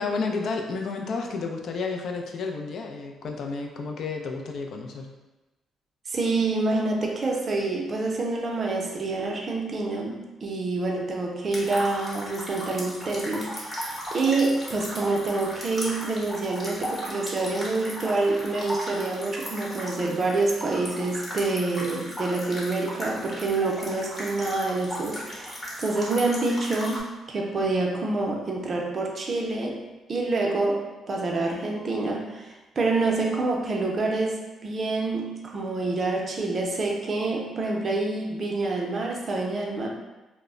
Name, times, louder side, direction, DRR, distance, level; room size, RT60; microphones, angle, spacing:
voice 1, 0.0-5.1, left 4 dB, 65° left, 3 dB, 0.3 m, -31 dB
voice 2, 6.1-29.8 30.1-39.9, right 3 dB, 40° right, 0 dB, 0.5 m, -27 dB
sound 1, 11.5-27.0, equal, 25° left, 0.9 m, -36 dB
2.0 x 2.0 x 3.6 m, 1.1 s
cardioid pair, 90°, 0 cm